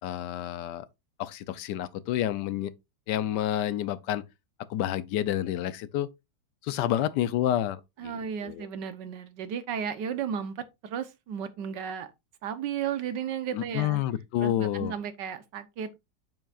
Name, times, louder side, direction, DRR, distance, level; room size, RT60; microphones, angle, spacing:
voice 1, 0.0-0.9 1.2-2.7 3.1-4.2 4.7-6.1 6.6-8.2 8.4-8.7 13.5-14.9, left 12 dB, 75° left, 1.2 m, -29 dB
voice 2, 8.0-12.1 12.4-14.0 14.4-16.0, right 8 dB, 75° right, 1.5 m, -34 dB
8.0 x 7.3 x 2.4 m
omnidirectional pair, 1.9 m